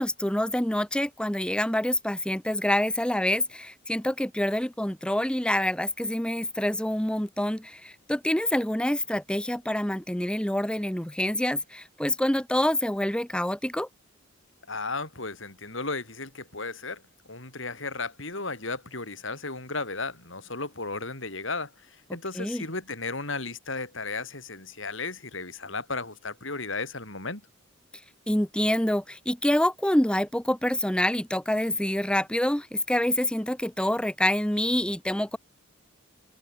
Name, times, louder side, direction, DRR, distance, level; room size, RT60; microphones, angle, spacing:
voice 1, 0.0-13.9 22.4-22.6 28.3-35.4, left 1 dB, 5° left, 0.9 m, -26 dB
voice 2, 14.7-17.0 17.3-21.7 22.1-27.4, left 3 dB, 65° left, 5.6 m, -34 dB
open air
head